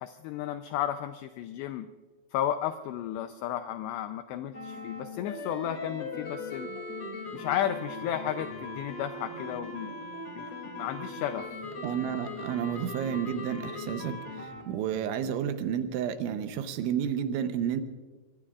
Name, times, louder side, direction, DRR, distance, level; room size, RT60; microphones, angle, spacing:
voice 1, 0.0-1.9 2.3-6.7 7.3-10.0 10.4-10.5 10.8-11.5, left 11 dB, 85° left, 8 dB, 2.4 m, -33 dB
sound 1, 4.5-14.6, left 2 dB, 35° left, 2.7 m, -39 dB
voice 2, 11.8-17.8, right 9 dB, 80° right, 9 dB, 3.1 m, -31 dB
25.5 x 21.5 x 2.4 m, 1.4 s
omnidirectional pair, 5.7 m